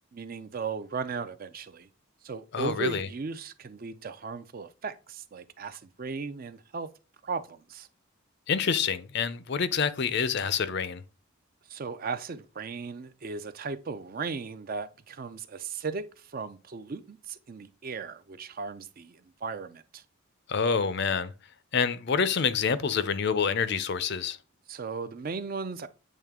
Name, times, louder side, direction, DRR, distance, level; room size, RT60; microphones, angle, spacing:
voice 1, 0.1-1.9 2.2-6.9 7.2-7.9 11.7-20.0 24.7-25.9, right 4 dB, 40° right, 0.4 m, -36 dB
voice 2, 2.5-3.1 8.5-11.0 20.5-21.3 21.7-24.4, left 6 dB, 50° left, 0.5 m, -27 dB
8.4 x 3.2 x 3.6 m
head